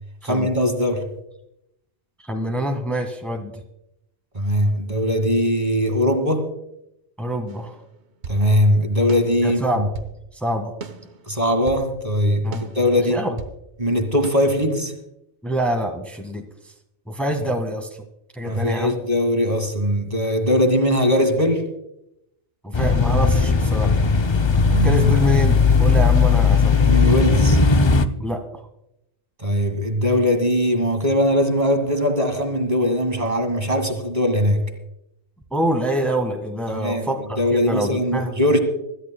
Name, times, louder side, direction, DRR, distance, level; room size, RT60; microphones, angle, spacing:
voice 1, 0.2-1.1 4.3-6.5 8.3-9.9 11.3-13.2 13.8-14.9 18.4-21.6 24.7-25.2 26.8-27.6 29.4-34.6 36.7-37.1 37.4-38.6, equal, 35° right, 5 dB, 2.0 m, -20 dB
voice 2, 2.2-3.5 7.2-7.7 9.4-9.9 10.3-10.7 12.4-12.7 13.1-13.4 15.4-16.4 17.1-17.9 18.3-18.9 22.6-23.9 24.8-27.1 28.2-28.4 35.5-38.3, right 1 dB, ahead, 2 dB, 1.7 m, -25 dB
sound 1, 7.5-8.5 9.1-10.2 10.8-11.9 12.5-13.6 14.2-14.4, right 4 dB, 75° right, 1.4 m, -37 dB
sound 2, 22.7-28.1, left 4 dB, 30° left, 0.6 m, -17 dB
25.5 x 13.5 x 2.2 m, 0.83 s
omnidirectional pair, 1.2 m